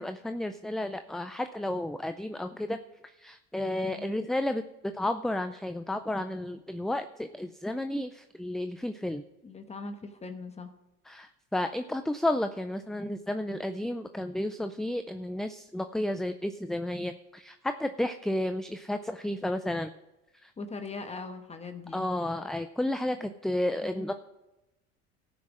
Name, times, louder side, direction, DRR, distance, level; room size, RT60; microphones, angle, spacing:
voice 1, 0.0-2.8 3.2-9.2 11.1-19.9 20.4-20.5 21.9-24.1, left 1 dB, ahead, 9 dB, 0.4 m, -32 dB
voice 2, 3.8-4.2 9.4-10.7 20.6-22.1 23.8-24.1, left 3 dB, 20° left, 7 dB, 1.1 m, -40 dB
14.0 x 6.1 x 6.2 m, 0.97 s
supercardioid pair, 100°, 29 cm